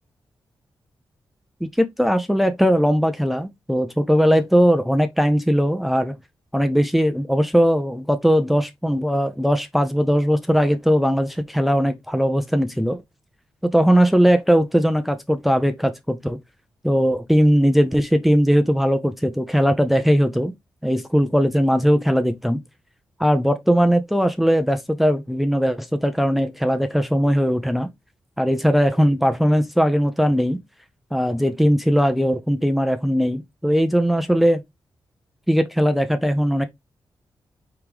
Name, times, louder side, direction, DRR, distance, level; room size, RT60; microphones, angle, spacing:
voice 1, 1.6-6.2 6.5-13.0 13.7-16.4 16.8-20.5 20.8-22.6 23.2-27.9 28.4-30.6 31.1-34.6 35.5-36.7, equal, ahead, 0.6 m, -19 dB
4.7 x 3.4 x 3.0 m
supercardioid pair, 45°, 9 cm